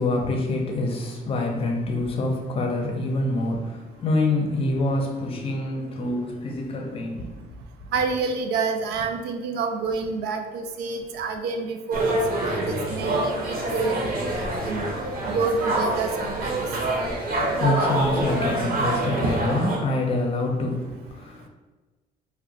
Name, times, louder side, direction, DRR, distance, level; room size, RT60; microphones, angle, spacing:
voice 1, 0.0-7.4 17.0-21.5, left 2 dB, 35° left, 2 dB, 0.5 m, -26 dB
voice 2, 7.9-14.1 14.6-15.0 15.2-16.6 19.2-19.3, right 4 dB, 80° right, 5 dB, 0.4 m, -28 dB
sound 1, 11.9-19.8, right 1 dB, 60° right, 0.8 m, -26 dB
2.4 x 2.1 x 3.8 m, 1.2 s
cardioid pair, 110°, 17 cm